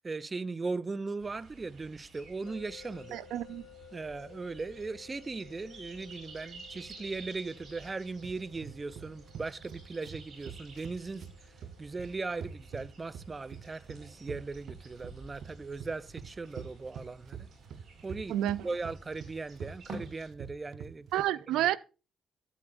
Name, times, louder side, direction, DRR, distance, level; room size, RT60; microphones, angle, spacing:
voice 1, 0.0-3.2 3.9-11.2 11.8-17.5 18.0-18.3 18.6-21.1, right 3 dB, 25° right, 0.5 m, -38 dB
sound 1, 1.2-20.3, right 3 dB, 50° right, 4.7 m, -52 dB
sound 2, 2.5-15.5, left 10 dB, 80° left, 3.6 m, -58 dB
voice 2, 3.1-3.7 18.3-18.7 21.1-21.8, right 13 dB, 90° right, 0.4 m, -30 dB
sound 3, 8.2-21.2, right 7 dB, 65° right, 0.9 m, -45 dB
12.5 x 8.5 x 2.5 m
cardioid pair, 90°, 0 cm